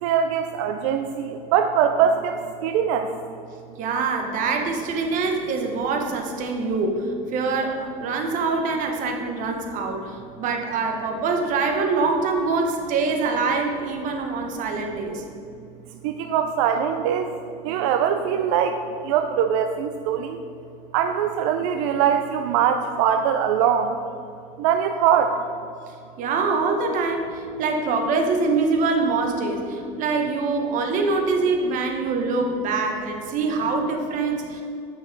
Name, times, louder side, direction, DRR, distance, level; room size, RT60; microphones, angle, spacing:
voice 1, 0.0-3.2 16.0-17.3 17.6-20.4 20.9-24.0 24.6-25.4, right 8 dB, 90° right, 6 dB, 0.4 m, -22 dB
voice 2, 3.8-15.2 26.2-34.6, right 4 dB, 55° right, 3 dB, 1.1 m, -24 dB
8.5 x 6.0 x 3.9 m, 2.5 s
cardioid pair, 125°, 16 cm